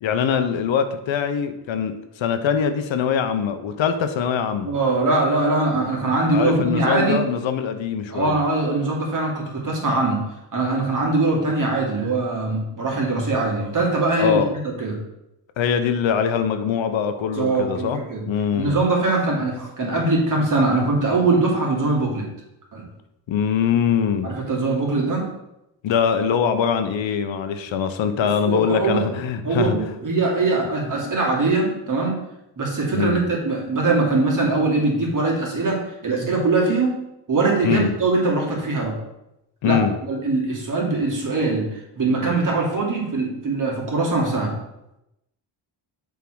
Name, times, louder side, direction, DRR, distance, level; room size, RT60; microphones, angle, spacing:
voice 1, 0.0-4.7 6.3-8.4 14.2-14.5 15.6-18.0 18.3-18.8 23.3-24.4 25.8-29.8 32.9-33.2 37.6-37.9 39.6-39.9, left 7 dB, 75° left, 9 dB, 0.8 m, -22 dB
voice 2, 4.6-7.2 8.1-10.2 10.5-14.4 14.8-15.0 17.3-18.3 18.5-22.3 22.7-22.8 24.2-25.3 28.2-29.1 29.4-32.2 32.6-37.0 37.3-38.9 39.6-44.6, right 3 dB, 40° right, -2 dB, 2.5 m, -22 dB
7.0 x 3.7 x 6.2 m, 0.88 s
cardioid pair, 110°, 47 cm